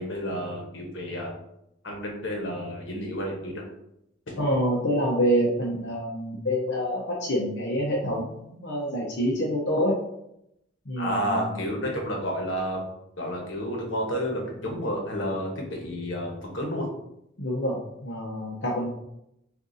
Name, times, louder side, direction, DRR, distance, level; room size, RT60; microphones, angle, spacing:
voice 1, 0.0-1.3 1.8-3.6 4.3-4.4 11.0-12.8 13.2-16.9, equal, 80° left, 0 dB, 1.1 m, -30 dB
voice 2, 4.4-9.9 10.9-11.5 17.4-18.9, equal, 60° left, -4 dB, 0.8 m, -27 dB
6.3 x 2.6 x 2.7 m, 0.80 s
head